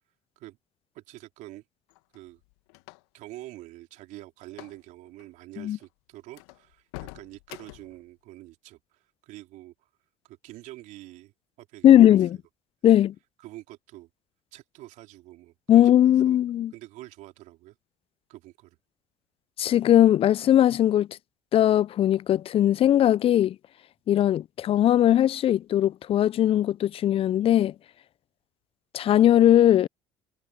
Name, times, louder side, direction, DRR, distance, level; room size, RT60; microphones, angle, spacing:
voice 1, 0.9-1.6 2.1-2.4 3.1-9.9 10.2-12.2 12.9-13.0 13.4-14.1 14.5-16.4 16.7-17.7 18.3-18.8, right 17 dB, 60° right, 3.8 m, -46 dB
sound 1, 1.9-3.3 4.5-4.8 5.1-5.3 5.8-5.9 6.3-8.0, left 25 dB, 75° left, 1.9 m, -45 dB
voice 2, 11.8-12.4 12.8-13.1 15.7-16.7 19.6-21.1 21.5-23.6 24.1-27.7 28.9-29.9, left 11 dB, 40° left, 0.5 m, -19 dB
hypercardioid pair, 65°, 14 cm